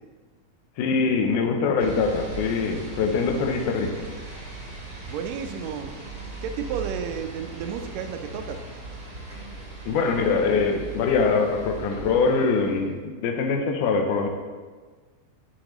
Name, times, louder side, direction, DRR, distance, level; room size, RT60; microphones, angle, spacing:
voice 1, 0.8-4.1 9.9-14.3, left 4 dB, 90° left, 4 dB, 2.2 m, -23 dB
sound 1, 1.8-12.9, right 3 dB, 45° right, 1.1 m, -39 dB
voice 2, 5.1-5.9 6.4-8.6, right 7 dB, 80° right, 6 dB, 1.6 m, -32 dB
10.5 x 4.9 x 3.0 m, 1.4 s
omnidirectional pair, 3.5 m